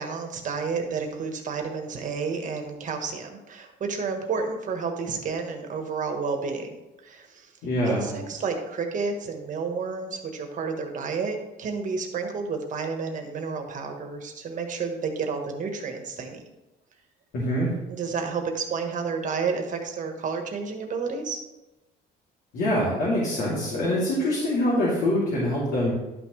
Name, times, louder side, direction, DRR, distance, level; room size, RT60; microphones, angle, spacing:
voice 1, 0.0-6.7 7.0-7.5 7.9-16.4 17.9-21.4, right 5 dB, 45° right, 4 dB, 1.4 m, -30 dB
voice 2, 7.6-8.1 17.3-17.7 22.5-25.9, left 1 dB, 75° left, -8 dB, 3.0 m, -24 dB
11.5 x 6.0 x 3.3 m, 1.0 s
cardioid pair, 135°, 18 cm